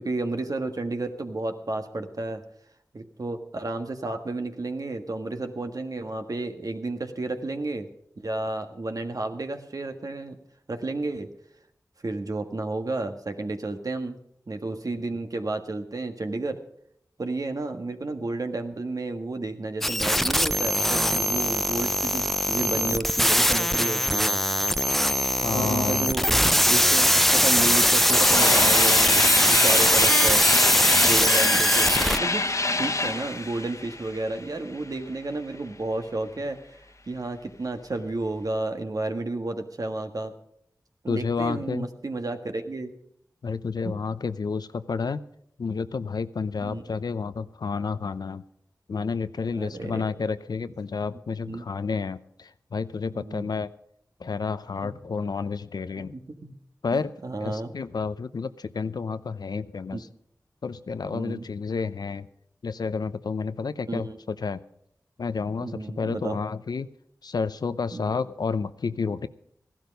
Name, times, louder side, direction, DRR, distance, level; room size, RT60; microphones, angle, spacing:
voice 1, 0.0-2.4 2.9-7.9 8.2-10.4 10.7-11.3 12.0-14.2 14.5-16.6 17.2-24.4 25.5-26.4 26.7-30.5 30.9-32.4 32.8-36.6 37.1-40.3 41.0-42.9 43.8-43.9 46.6-46.8 49.5-50.2 51.4-51.6 53.1-53.5 54.8-54.9 56.1-56.5 56.9-57.7 59.9-60.0 61.1-61.5 63.9-64.2 65.6-66.4 67.9-68.1, right 2 dB, 60° right, 6 dB, 1.5 m, -32 dB
sound 1, 19.8-32.2, equal, 5° left, 0.5 m, -21 dB
voice 2, 25.4-26.1 41.1-41.9 43.4-45.2 45.6-48.4 48.9-53.7 54.2-56.2 56.8-57.1 57.4-60.1 60.6-62.3 62.6-64.6 65.2-66.9 67.2-69.3, left 5 dB, 80° left, 13 dB, 0.6 m, -30 dB
sound 2, 26.2-26.3 26.5-35.2, left 2 dB, 50° left, 1.3 m, -28 dB
15.0 x 12.0 x 5.3 m, 0.71 s
cardioid pair, 40°, 7 cm